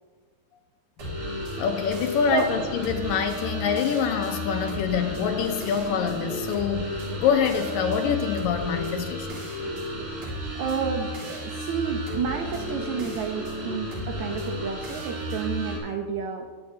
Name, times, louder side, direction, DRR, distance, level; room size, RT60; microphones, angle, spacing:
sound 1, 1.0-15.8, equal, 55° right, 4.3 m, -33 dB
voice 1, 1.6-9.4, left 7 dB, 75° left, 5 dB, 2.4 m, -26 dB
voice 2, 10.6-16.5, right 7 dB, 85° right, 4 dB, 1.6 m, -30 dB
21.5 x 9.0 x 2.8 m, 1.5 s
omnidirectional pair, 4.3 m